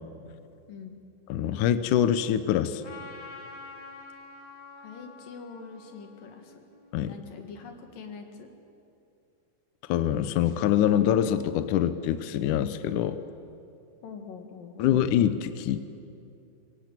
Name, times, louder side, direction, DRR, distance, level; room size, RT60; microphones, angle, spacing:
voice 1, 1.3-2.8 6.9-7.2 9.9-13.2 14.8-15.8, left 10 dB, 80° left, 11 dB, 1.8 m, -24 dB
Trumpet, 2.8-7.5, left 3 dB, 35° left, 1.7 m, -47 dB
voice 2, 4.8-6.6 7.1-8.5 14.0-14.9, left 5 dB, 60° left, 5 dB, 3.6 m, -44 dB
24.0 x 23.5 x 8.9 m, 2.6 s
omnidirectional pair, 4.7 m